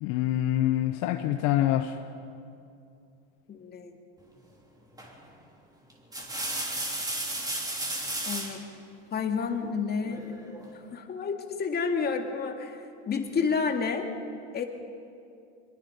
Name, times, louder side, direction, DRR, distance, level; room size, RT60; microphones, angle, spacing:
voice 1, 0.0-1.9, left 13 dB, 60° left, 7 dB, 1.0 m, -25 dB
voice 2, 3.5-4.0 8.3-8.6 9.1-10.4 10.7-14.1 14.5-14.6, left 5 dB, 30° left, 4 dB, 2.2 m, -30 dB
sound 1, 5.0-5.3 5.9-8.6 10.1-10.7, right 1 dB, 10° right, 3.3 m, -33 dB
24.0 x 22.5 x 5.4 m, 2.5 s
supercardioid pair, 105°, 33 cm